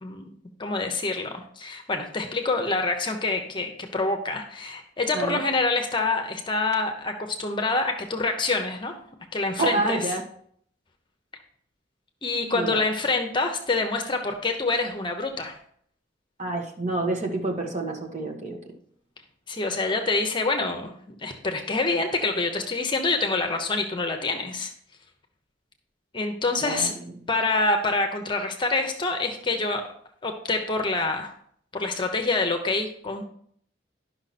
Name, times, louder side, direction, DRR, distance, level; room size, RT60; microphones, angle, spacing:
voice 1, 0.0-9.0 9.3-10.0 12.2-15.6 19.5-24.7 26.1-26.9 27.3-29.9 30.2-31.3 31.7-33.2, left 3 dB, 25° left, 4 dB, 0.9 m, -26 dB
voice 2, 9.6-10.2 12.5-12.8 16.4-18.6 26.6-27.2, right 2 dB, 40° right, 1 dB, 1.6 m, -28 dB
11.5 x 6.0 x 4.2 m, 0.63 s
head